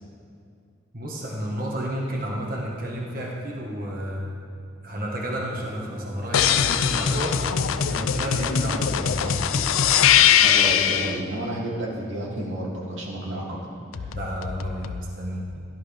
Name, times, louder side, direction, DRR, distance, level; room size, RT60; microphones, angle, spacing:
voice 1, 0.9-4.3 4.8-7.5 7.8-9.5 14.1-15.4, equal, 45° right, -2 dB, 1.5 m, -31 dB
sound 1, 5.3-11.5, right 1 dB, 15° right, 0.5 m, -42 dB
sound 2, 6.3-11.2 13.9-15.0, left 8 dB, 85° left, 0.5 m, -21 dB
voice 2, 10.4-13.4, right 1 dB, 70° right, -4 dB, 2.6 m, -30 dB
16.5 x 11.5 x 3.5 m, 2.4 s
head